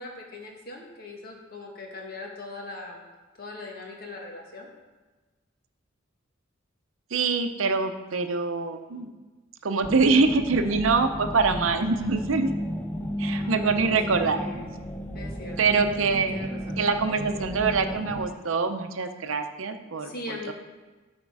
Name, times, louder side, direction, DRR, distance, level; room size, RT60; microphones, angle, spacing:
voice 1, 0.0-3.0 3.4-4.7 13.4-14.6 15.1-15.6 16.0-16.8 20.0-20.5, left 2 dB, 50° left, 0 dB, 1.5 m, -40 dB
voice 2, 7.1-9.1 9.6-12.5 13.2-14.4 15.6-16.5 16.8-20.5, right 4 dB, 80° right, 7 dB, 0.7 m, -24 dB
sound 1, 9.8-18.3, equal, 10° left, 0.5 m, -34 dB
12.5 x 4.4 x 4.8 m, 1.3 s
head